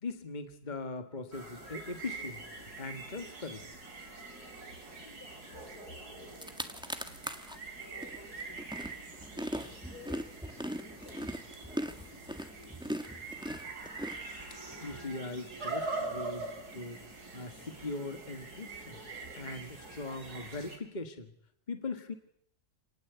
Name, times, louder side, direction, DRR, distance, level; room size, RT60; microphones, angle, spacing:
voice 1, 0.0-3.7 14.8-17.0 17.3-19.0 19.4-21.3 21.7-22.1, left 3 dB, 30° left, 7 dB, 1.9 m, -40 dB
sound 1, 1.3-20.8, right 3 dB, 90° right, 4.6 m, -44 dB
voice 2, 5.0-7.3 7.8-10.4 10.8-13.1, left 2 dB, 75° left, 5 dB, 5.9 m, -56 dB
sound 2, 6.0-6.1 6.3-7.6 8.0-14.8, equal, 5° right, 1.8 m, -39 dB
29.0 x 19.0 x 8.2 m, 0.71 s
omnidirectional pair, 1.6 m